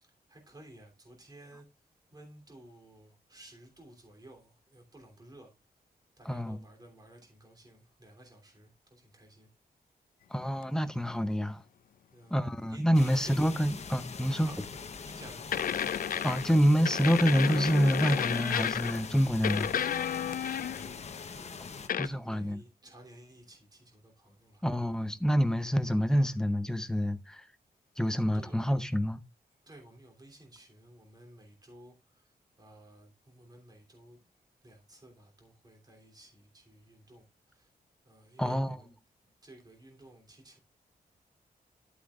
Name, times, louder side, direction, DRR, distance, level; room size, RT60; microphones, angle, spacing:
voice 1, 0.0-1.7 2.1-5.5 6.2-9.5 11.4-11.5 12.1-12.4 12.7-13.4 14.4-15.7 20.2-24.6 25.7-25.8 28.1-28.6 29.6-34.3 34.6-37.7 38.0-38.9 39.4-40.6, right 1 dB, 25° right, 3.1 m, -55 dB
voice 2, 6.3-6.6 10.3-11.6 12.3-14.5 16.2-19.7 22.0-22.6 24.6-27.4 28.0-29.2 38.4-38.8, equal, 5° left, 0.7 m, -27 dB
sound 1, 12.9-21.9, left 5 dB, 45° left, 0.9 m, -43 dB
sound 2, 14.6-14.8 15.5-16.6 16.9-19.1 19.4-21.0 21.9-22.1, left 9 dB, 65° left, 0.5 m, -32 dB
12.0 x 8.3 x 2.4 m
wide cardioid pair, 150°, 16 cm